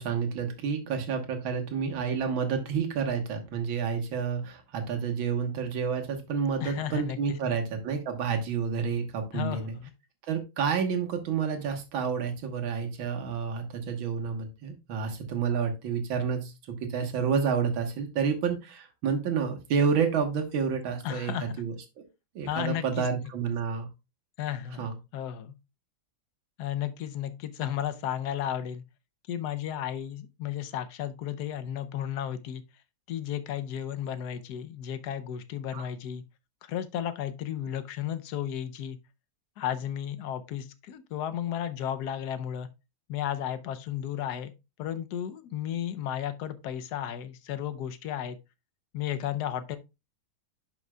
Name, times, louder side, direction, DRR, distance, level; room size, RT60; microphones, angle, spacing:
voice 1, 0.0-9.8 10.3-21.7 22.4-23.9 24.8-24.9 35.7-35.9, right 6 dB, 90° right, 2.1 m, -29 dB
voice 2, 6.6-7.6 9.3-9.9 21.0-21.6 22.5-23.1 24.4-25.5 26.6-28.8 29.3-32.6 33.1-36.2 36.6-39.0 39.6-42.7 43.1-44.5 44.8-48.4 48.9-49.8, left 10 dB, 65° left, 1.1 m, -34 dB
11.0 x 5.4 x 2.3 m
omnidirectional pair, 2.1 m